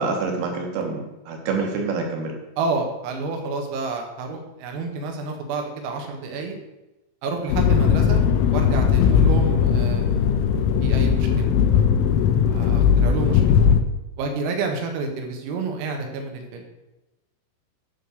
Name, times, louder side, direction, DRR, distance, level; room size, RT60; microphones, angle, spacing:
voice 1, 0.0-2.4, right 4 dB, 65° right, 2 dB, 2.7 m, -26 dB
voice 2, 2.6-6.6 7.2-8.2 8.5-10.5 10.8-11.5 12.5-13.6 14.2-16.6, right 4 dB, 85° right, 3 dB, 4.4 m, -29 dB
sound 1, 7.5-13.8, left 7 dB, 85° left, 3.2 m, -18 dB
13.5 x 5.3 x 6.4 m, 1.0 s
omnidirectional pair, 5.9 m